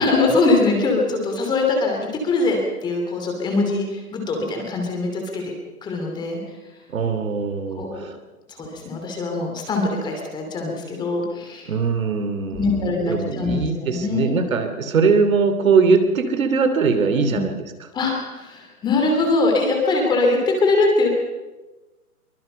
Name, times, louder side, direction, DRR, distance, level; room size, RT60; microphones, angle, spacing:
voice 1, 0.0-2.0 2.2-5.5 5.8-6.4 7.7-8.0 8.5-11.7 12.5-14.4 17.3-17.4 17.9-21.1, left 3 dB, 10° left, 1 dB, 2.8 m, -22 dB
voice 2, 6.9-8.2 8.6-8.7 11.7-17.6, right 5 dB, 60° right, 8 dB, 3.0 m, -21 dB
23.5 x 21.5 x 5.6 m, 1.1 s
hypercardioid pair, 165°, 45 cm